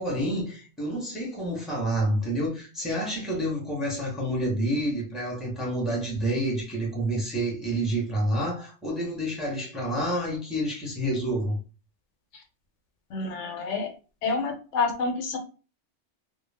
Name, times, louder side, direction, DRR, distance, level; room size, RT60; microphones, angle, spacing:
voice 1, 0.0-11.6, right 1 dB, ahead, 0.8 m, -28 dB
voice 2, 13.1-13.9 14.2-15.4, left 4 dB, 90° left, 1.0 m, -28 dB
2.4 x 2.0 x 3.3 m
omnidirectional pair, 1.2 m